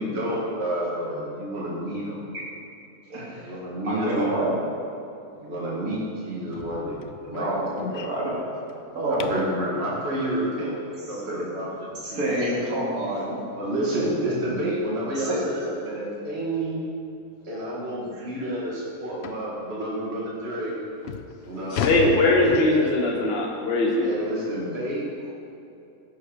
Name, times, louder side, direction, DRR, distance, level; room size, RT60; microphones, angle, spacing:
voice 1, 0.0-2.2 3.3-4.6 5.4-7.5 7.9-8.0 9.1-12.2 13.5-16.8 17.4-20.8 21.4-22.6 24.0-25.3, right 1 dB, 45° right, -5 dB, 2.3 m, -30 dB
voice 2, 3.1-3.6 3.8-4.5 7.4-7.6 7.9-8.5 8.9-9.4 11.3-11.4 12.0-13.4 15.2-15.4 18.1-18.5, right 1 dB, 70° right, -6 dB, 3.1 m, -28 dB
sound 1, 6.5-9.6 12.4-12.5 13.0-13.2 13.6-13.7 14.1-14.2 15.3-15.5 15.9-16.0 16.7-16.8 17.1-17.2 17.7-17.8 19.2-19.5 20.3-20.4 20.8-23.1, left 7 dB, 65° left, 0.7 m, -35 dB
voice 3, 21.7-24.1, left 2 dB, 40° left, -1 dB, 1.5 m, -21 dB
15.5 x 7.3 x 6.5 m, 2.7 s
omnidirectional pair, 1.6 m